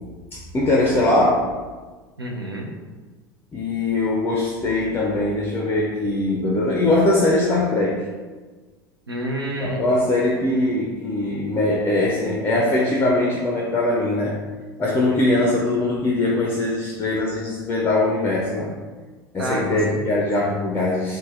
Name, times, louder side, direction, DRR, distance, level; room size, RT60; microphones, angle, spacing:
voice 1, 0.3-1.5 3.5-8.0 9.6-14.3 14.8-18.7 19.3-21.2, left 2 dB, 20° left, -3 dB, 0.4 m, -21 dB
voice 2, 2.2-2.7 9.1-9.8 15.1-15.5 19.4-19.8 20.2-20.3, right 1 dB, 90° right, -1 dB, 0.4 m, -29 dB
3.2 x 2.2 x 2.4 m, 1.3 s
figure-of-eight pair, 75°, 12 cm